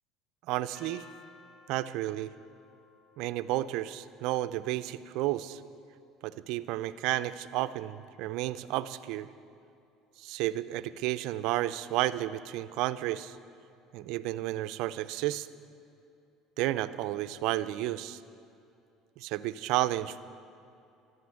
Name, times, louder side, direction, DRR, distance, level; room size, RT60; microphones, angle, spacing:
voice 1, 0.5-1.0 1.7-2.3 3.2-5.6 6.2-9.3 10.2-13.4 13.9-15.5 16.6-18.2 19.2-20.2, right 15 dB, 70° right, 13 dB, 0.5 m, -32 dB
sound 1, 0.7-6.7, left 4 dB, 50° left, 4.0 m, -59 dB
13.0 x 12.5 x 7.7 m, 2.7 s
supercardioid pair, 110°, 0 cm